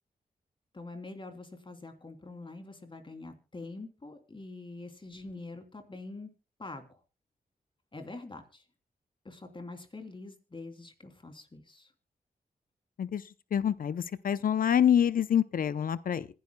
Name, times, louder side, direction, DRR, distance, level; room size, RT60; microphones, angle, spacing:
voice 1, 0.7-6.3 6.6-6.9 7.9-8.6 9.2-11.9, left 2 dB, 30° left, 3.1 m, -45 dB
voice 2, 13.5-16.3, left 9 dB, 65° left, 0.6 m, -26 dB
25.5 x 11.0 x 2.2 m
cardioid pair, 55°, 16 cm